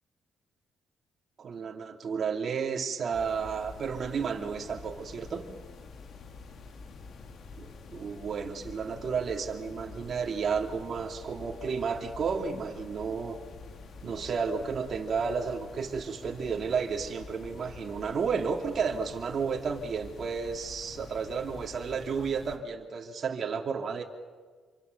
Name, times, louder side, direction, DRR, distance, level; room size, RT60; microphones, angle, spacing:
voice 1, 1.4-5.5 7.6-13.4 14.0-24.0, right 5 dB, 50° right, 1 dB, 3.0 m, -32 dB
sound 1, 3.1-22.6, left 4 dB, 65° left, 2.9 m, -47 dB
28.0 x 24.0 x 6.8 m, 1.5 s
cardioid pair, 90°, 0 cm